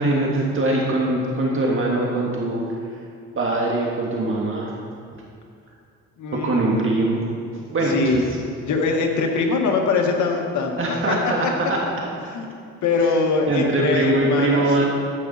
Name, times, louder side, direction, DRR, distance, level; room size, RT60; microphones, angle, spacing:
voice 1, 0.0-2.6 3.4-4.7 6.3-7.3 7.7-8.0 10.8-11.8 13.5-14.9, right 2 dB, 45° right, -2 dB, 1.7 m, -22 dB
voice 2, 6.2-6.9 7.8-8.3 8.7-11.2 12.3-12.5 12.8-14.9, left 4 dB, 70° left, 2 dB, 1.6 m, -22 dB
13.0 x 8.4 x 4.2 m, 2.3 s
cardioid pair, 90°, 30 cm